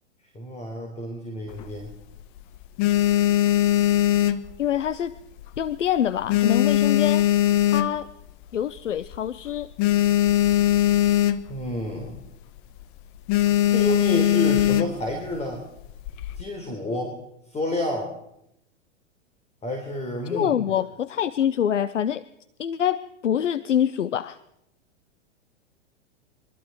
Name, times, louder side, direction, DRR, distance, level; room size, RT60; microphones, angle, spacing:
voice 1, 0.3-1.9 11.5-12.2 13.7-15.6 16.3-17.2 17.5-18.1 19.6-20.5, left 1 dB, 20° left, 3 dB, 4.0 m, -29 dB
sound 1, 1.5-2.2 2.6-5.1 5.4-5.8 6.1-8.3 8.8-8.9 9.0-9.2 9.5-11.7 12.0-12.3 12.6-12.8 13.3-15.1 15.8-16.4, left 13 dB, 45° left, 1.2 m, -21 dB
voice 2, 4.6-5.1 5.6-7.2 7.7-8.1 8.5-9.7 20.3-22.2 22.6-24.4, left 9 dB, 85° left, 15 dB, 0.8 m, -25 dB
26.5 x 24.0 x 4.7 m, 0.80 s
hypercardioid pair, 110°, 36 cm